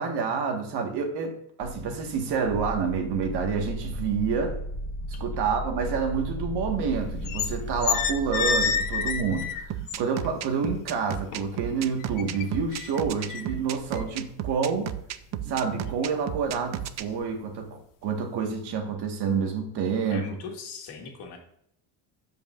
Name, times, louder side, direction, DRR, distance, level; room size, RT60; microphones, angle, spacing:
voice 1, 0.0-4.6 5.2-9.7 10.0-14.9 15.5-20.3, right 5 dB, 65° right, 4 dB, 1.6 m, -28 dB
sound 1, 1.6-9.8, equal, 5° left, 1.2 m, -35 dB
sound 2, 7.0-7.5 7.8-10.3 10.7-11.6 12.0-15.1 15.5-15.8 16.2-16.6 17.0-17.2, left 6 dB, 50° left, 0.8 m, -29 dB
sound 3, 9.7-17.0, right 11 dB, 40° right, 0.4 m, -33 dB
voice 2, 20.1-21.4, left 5 dB, 70° left, 2 dB, 1.9 m, -40 dB
12.5 x 5.2 x 2.5 m, 0.74 s
cardioid pair, 150°, 43 cm